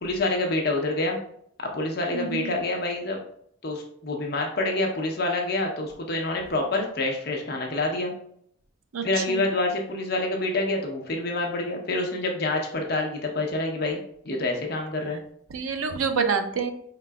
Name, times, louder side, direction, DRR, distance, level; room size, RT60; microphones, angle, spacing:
voice 1, 0.0-1.2 1.6-3.2 3.6-8.1 9.0-15.2, left 2 dB, 50° left, 1 dB, 0.8 m, -27 dB
voice 2, 2.1-2.5 8.9-9.5 15.5-16.7, right 5 dB, 90° right, 7 dB, 0.5 m, -27 dB
4.7 x 3.8 x 2.3 m, 0.66 s
head